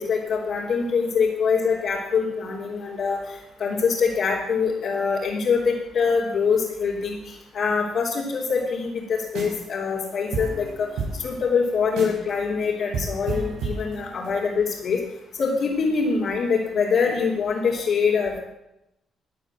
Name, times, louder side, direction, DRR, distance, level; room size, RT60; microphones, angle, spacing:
voice 1, 0.0-3.2 3.6-7.2 7.5-10.7 11.2-15.0 15.4-18.4, left 5 dB, 60° left, -6 dB, 3.5 m, -24 dB
sound 1, 9.3-9.7 10.0-10.1 10.3-12.3 12.6-12.7 12.9-14.4, right 3 dB, 90° right, 5.5 m, -31 dB
15.5 x 9.3 x 7.8 m, 0.86 s
cardioid pair, 90°, 0 cm